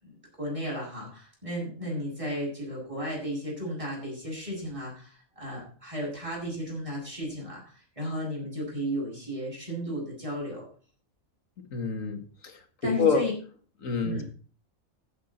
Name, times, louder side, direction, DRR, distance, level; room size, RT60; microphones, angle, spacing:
voice 1, 0.0-10.7 12.8-13.3 13.8-14.2, equal, 25° right, -4 dB, 8.0 m, -34 dB
voice 2, 11.7-12.6 13.0-13.2 13.8-14.2, left 5 dB, 70° left, 6 dB, 2.2 m, -27 dB
15.5 x 8.5 x 4.4 m, 0.41 s
omnidirectional pair, 1.4 m